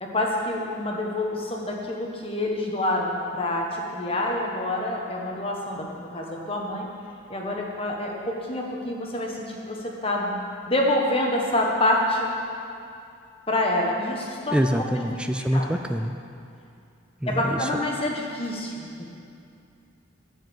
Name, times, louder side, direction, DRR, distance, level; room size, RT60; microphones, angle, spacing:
voice 1, 0.0-6.9 7.3-10.4 10.7-12.3 13.5-14.6 15.1-15.2 15.5-15.7 17.3-19.1, left 1 dB, 25° left, -1 dB, 1.3 m, -27 dB
voice 2, 14.5-16.1 17.2-17.8, equal, 5° right, 6 dB, 0.3 m, -25 dB
14.0 x 4.9 x 7.8 m, 2.5 s
head